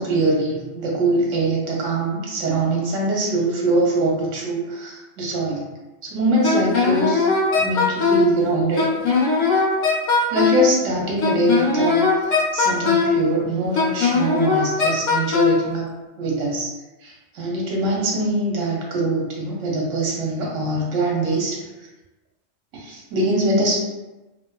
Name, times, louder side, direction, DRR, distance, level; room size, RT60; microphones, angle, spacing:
voice 1, 0.0-5.6 6.0-7.3 7.5-8.8 10.3-12.0 12.5-15.9 16.2-16.7 17.0-21.6 22.7-23.8, right 2 dB, 75° right, -3 dB, 1.1 m, -23 dB
Wind instrument woodwind instrument, 6.4-8.3 8.8-10.7 11.2-13.2 13.8-15.6, left 4 dB, 80° left, 1.0 m, -19 dB
2.5 x 2.4 x 2.2 m, 1.1 s
omnidirectional pair, 1.3 m